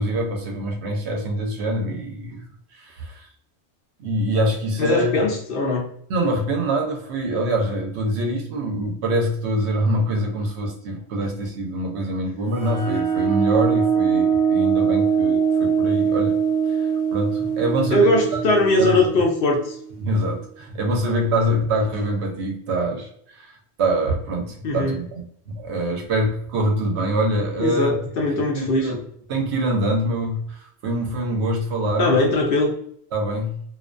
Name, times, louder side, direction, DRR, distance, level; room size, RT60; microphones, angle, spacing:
voice 1, 0.0-2.4 2.7-3.3 4.0-5.2 6.1-16.4 16.7-18.4 18.8-19.1 20.0-28.0 28.3-29.0 29.3-32.2 33.1-33.6, right 1 dB, 75° right, 2 dB, 0.9 m, -25 dB
voice 2, 4.8-5.9 17.9-19.8 24.6-25.0 27.6-28.9 32.0-32.8, left 2 dB, 60° left, 1 dB, 0.7 m, -20 dB
sound 1, 12.5-20.0, right 7 dB, 85° left, 1.0 m, -22 dB
2.4 x 2.2 x 2.4 m, 0.65 s
omnidirectional pair, 1.1 m